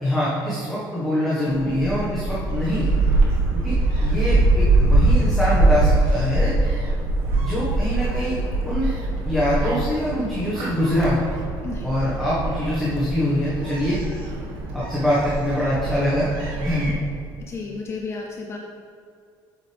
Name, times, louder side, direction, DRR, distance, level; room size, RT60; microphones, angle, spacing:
voice 1, 0.0-2.9 3.5-3.7 4.0-6.5 7.4-8.4 8.6-8.9 9.2-11.3 11.8-14.0 14.7-16.3 16.6-17.0, equal, ahead, -10 dB, 1.5 m, -24 dB
Gull seagull, 1.5-16.9, right 2 dB, 90° right, 1.6 m, -23 dB
voice 2, 17.5-18.6, left 4 dB, 30° left, 1 dB, 0.6 m, -32 dB
8.1 x 7.7 x 3.5 m, 2.3 s
cardioid pair, 165°, 9 cm